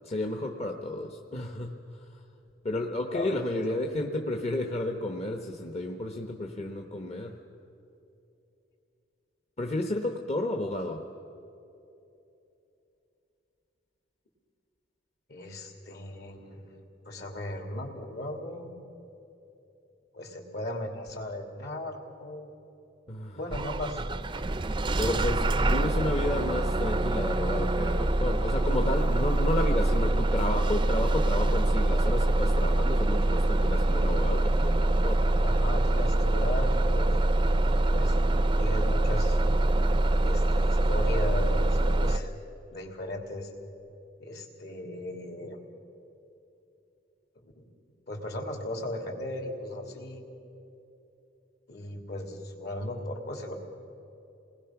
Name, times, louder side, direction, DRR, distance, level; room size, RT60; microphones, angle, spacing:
voice 1, 0.0-2.1 2.6-7.4 9.6-11.0 23.1-23.4 25.0-35.2, left 1 dB, 35° left, 2 dB, 1.1 m, -32 dB
voice 2, 3.1-3.4 15.3-18.7 20.1-22.5 23.3-24.0 35.4-37.2 37.9-38.2 38.5-39.4 40.2-42.3 42.7-43.5 44.2-45.6 47.4-47.7 48.1-50.2 51.7-53.5, left 1 dB, 60° left, 2 dB, 3.1 m, -37 dB
Bus / Engine starting, 23.5-42.2, right 1 dB, 25° right, 0.5 m, -25 dB
28.5 x 20.0 x 6.0 m, 2.9 s
head